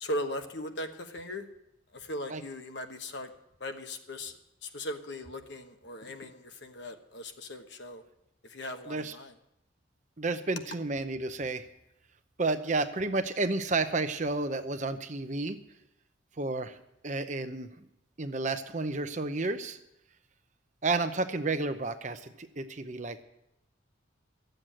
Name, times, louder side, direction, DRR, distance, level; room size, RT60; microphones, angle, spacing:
voice 1, 0.0-1.5 1.9-3.3 3.6-4.3 4.6-8.0 8.4-9.3, left 1 dB, 60° left, 6 dB, 1.2 m, -38 dB
voice 2, 10.2-11.6 12.4-15.6 16.4-16.8 17.0-17.7 18.2-19.8 20.8-23.2, right 3 dB, 35° right, 9 dB, 0.7 m, -31 dB
13.0 x 7.9 x 8.9 m, 0.83 s
head